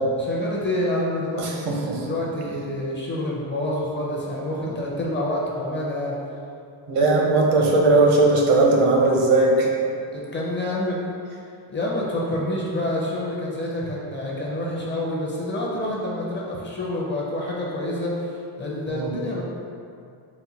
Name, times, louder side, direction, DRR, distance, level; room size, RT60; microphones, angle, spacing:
voice 1, 0.2-6.2 8.0-8.1 10.1-11.0 11.7-19.4, left 1 dB, 25° left, -4 dB, 0.5 m, -27 dB
voice 2, 6.9-9.7 18.9-19.1, right 2 dB, 80° right, -1 dB, 0.9 m, -18 dB
4.1 x 2.2 x 4.1 m, 2.4 s
cardioid pair, 135°, 49 cm